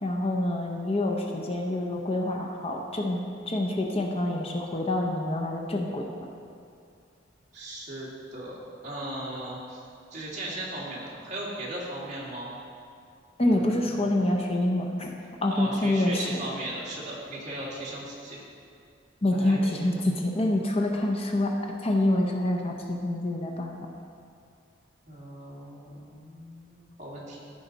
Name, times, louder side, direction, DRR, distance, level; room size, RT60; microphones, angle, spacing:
voice 1, 0.0-6.1 13.4-15.1 15.4-16.4 19.2-23.8, left 1 dB, 35° left, 1 dB, 0.7 m, -26 dB
voice 2, 7.5-8.6 8.8-9.8 10.1-12.5 13.4-14.1 15.5-18.4 19.3-19.8 25.1-27.4, right 1 dB, 40° right, -6 dB, 2.0 m, -37 dB
14.5 x 4.9 x 4.0 m, 2.4 s
head